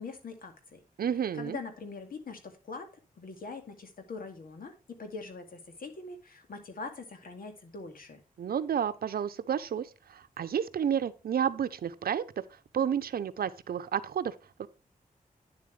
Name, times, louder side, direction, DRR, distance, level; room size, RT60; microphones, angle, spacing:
voice 1, 0.0-0.8 1.3-2.9 3.2-8.2, left 4 dB, 75° left, 2.2 m, -43 dB
voice 2, 1.0-1.6 8.4-12.2 12.7-14.7, right 8 dB, 80° right, 0.7 m, -31 dB
9.5 x 7.6 x 3.3 m
wide cardioid pair, 105°, 15 cm